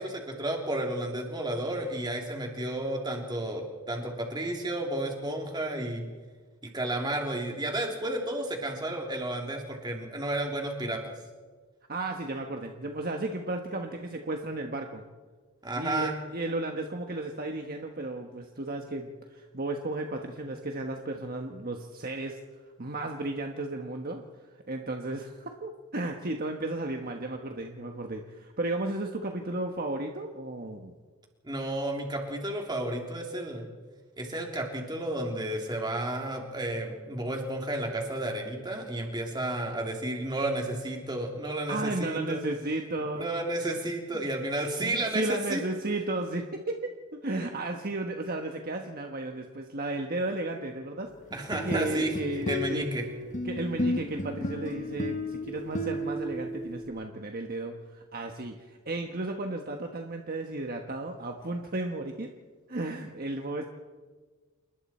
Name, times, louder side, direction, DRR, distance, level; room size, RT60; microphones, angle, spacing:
voice 1, 0.0-6.0 6.7-11.1 15.6-16.2 31.4-33.6 34.2-42.4 43.1-45.6 51.3-52.1 52.5-53.0, right 1 dB, 20° right, 1 dB, 3.2 m, -32 dB
voice 2, 11.9-15.0 15.7-22.4 22.8-24.2 24.7-30.9 41.7-43.3 44.1-44.3 44.8-51.1 51.6-52.8 53.4-62.3 62.7-63.7, right 2 dB, 40° right, 3 dB, 1.3 m, -34 dB
sound 1, 51.3-56.9, left 1 dB, 35° left, 1.3 m, -33 dB
28.5 x 20.5 x 4.4 m, 1.4 s
head